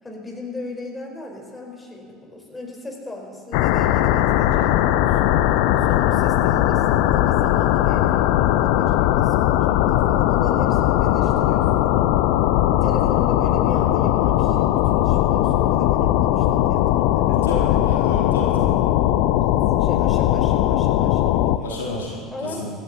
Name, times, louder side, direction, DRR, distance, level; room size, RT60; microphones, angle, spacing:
voice 1, 0.0-5.3 5.8-12.1 12.8-17.9 19.5-21.8 22.3-22.7, left 2 dB, 15° left, -1 dB, 4.1 m, -37 dB
sound 1, 3.5-21.6, left 13 dB, 60° left, 0.5 m, -19 dB
voice 2, 17.3-18.7 21.6-22.7, left 2 dB, 80° left, -4 dB, 3.2 m, -31 dB
25.0 x 12.5 x 2.9 m, 2.2 s
figure-of-eight pair, 65°, 0 cm